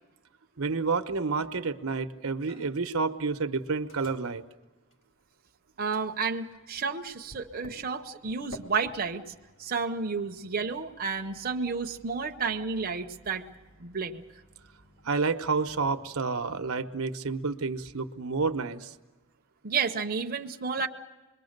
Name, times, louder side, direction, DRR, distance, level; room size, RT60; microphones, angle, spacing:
voice 1, 0.6-4.4 15.0-18.9, right 4 dB, 75° right, 8 dB, 0.9 m, -29 dB
Microwave oven, 2.5-3.0 3.2-5.5 5.9-16.9, left 1 dB, 65° left, 2.9 m, -55 dB
voice 2, 5.8-9.2 9.6-13.4 13.8-14.2 19.6-20.9, right 5 dB, 45° right, 4 dB, 0.8 m, -31 dB
26.0 x 22.0 x 6.6 m, 1.2 s
head